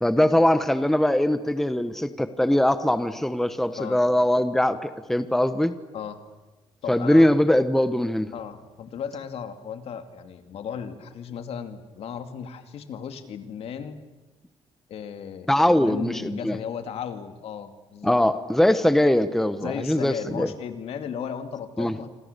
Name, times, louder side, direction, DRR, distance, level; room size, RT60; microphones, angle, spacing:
voice 1, 0.0-5.7 6.9-8.3 15.5-16.6 18.0-20.5 21.8-21.9, left 1 dB, 5° left, 11 dB, 1.1 m, -21 dB
voice 2, 6.8-7.3 8.3-14.0 14.9-18.2 19.6-22.1, left 7 dB, 70° left, 8 dB, 2.4 m, -35 dB
27.5 x 26.5 x 6.8 m, 1.2 s
cardioid pair, 130°, 11 cm